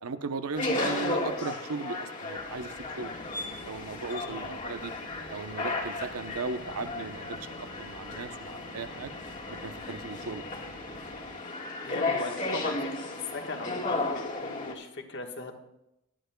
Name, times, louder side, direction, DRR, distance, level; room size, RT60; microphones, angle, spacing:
voice 1, 0.0-3.1 3.6-4.9 5.3-7.4 7.8-9.1 9.6-10.4, right 4 dB, 85° right, 10 dB, 0.8 m, -37 dB
sound 1, 0.6-14.7, left 2 dB, 35° left, 1.5 m, -34 dB
sound 2, 2.4-11.3, equal, 70° right, 4.5 m, -50 dB
voice 2, 4.2-4.7 11.8-13.0 13.3-14.1 14.4-15.5, left 2 dB, 55° left, 3 dB, 1.4 m, -39 dB
19.5 x 12.5 x 2.3 m, 0.85 s
head